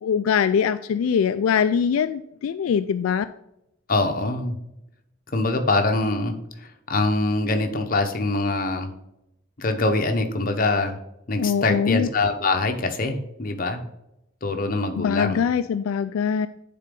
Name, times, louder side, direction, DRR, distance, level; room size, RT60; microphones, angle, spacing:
voice 1, 0.0-3.3 11.4-12.1 15.0-16.5, left 7 dB, 80° left, 11 dB, 0.3 m, -22 dB
voice 2, 3.9-4.6 5.3-6.3 6.9-8.9 9.6-11.0 11.3-13.9 14.4-15.4, left 2 dB, 40° left, 5 dB, 0.8 m, -23 dB
9.6 x 3.9 x 3.7 m, 0.86 s
head